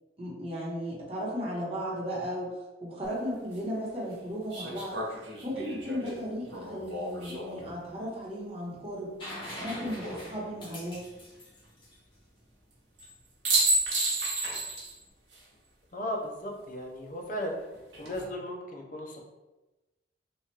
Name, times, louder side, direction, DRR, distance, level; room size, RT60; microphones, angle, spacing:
voice 1, 0.2-2.5 2.8-5.0 5.4-9.1 9.6-11.1, equal, 30° right, -5 dB, 1.0 m, -35 dB
sound 1, 3.0-3.1 4.5-7.7 9.5-10.2 13.0-13.1 13.4-15.0 15.3-15.4 17.7-18.2, right 2 dB, 85° right, 1.0 m, -31 dB
sound 2, 9.2-12.9 14.8-14.9, equal, 25° left, 1.1 m, -43 dB
voice 2, 15.9-17.6 18.0-19.2, left 1 dB, 45° left, 1 dB, 0.6 m, -36 dB
3.0 x 2.4 x 4.3 m, 1.1 s
head